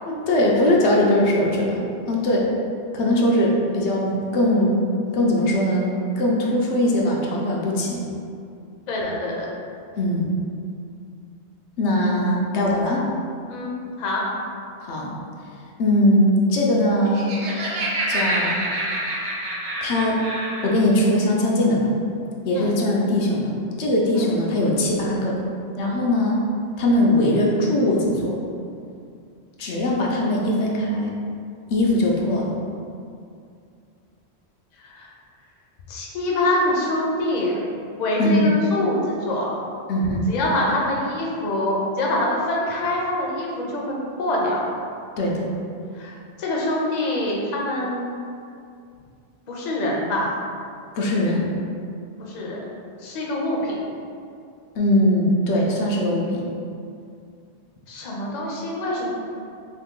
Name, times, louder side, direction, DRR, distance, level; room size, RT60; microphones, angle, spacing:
voice 1, 0.1-2.5 2.9-4.8 5.1-8.0 10.0-10.3 11.8-13.0 14.8-15.1 15.8-17.3 18.1-18.6 19.8-20.2 20.6-21.9 22.4-23.5 23.8-25.4 25.8-26.4 26.8-28.4 29.6-31.1 31.7-32.6 38.2-38.5 39.9-40.3 45.2-45.5 50.9-51.5 54.7-56.4, left 1 dB, 85° left, -2 dB, 0.9 m, -20 dB
voice 2, 8.9-9.5 13.5-14.2 22.5-22.7 24.2-24.3 34.8-35.1 35.9-37.5 38.0-39.6 40.3-44.6 45.9-48.1 49.5-50.4 52.2-52.6 53.0-53.7 57.9-59.1, left 1 dB, 50° left, -3 dB, 0.6 m, -25 dB
Laughter, 16.9-20.8, right 1 dB, 85° right, 1.0 m, -27 dB
2.9 x 2.6 x 3.6 m, 2.4 s
omnidirectional pair, 1.1 m